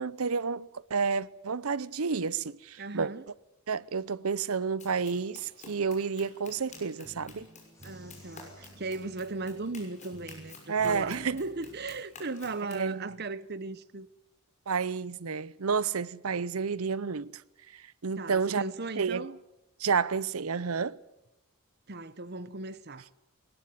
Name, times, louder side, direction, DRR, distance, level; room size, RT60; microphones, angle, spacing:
voice 1, 0.0-3.1 3.7-7.5 10.7-11.4 12.7-13.2 14.7-17.4 17.7-18.6 19.0-19.3 19.8-21.0, right 5 dB, 80° right, 0.8 m, -30 dB
voice 2, 2.8-3.2 7.8-14.1 18.2-19.4 21.9-23.1, right 3 dB, 50° right, 1.0 m, -37 dB
Run, 4.8-12.9, left 3 dB, 35° left, 6.1 m, -52 dB
sound 1, 6.5-12.0, equal, 30° right, 1.3 m, -53 dB
sound 2, 7.7-10.4, left 2 dB, 15° left, 6.5 m, -63 dB
21.5 x 19.0 x 9.3 m
head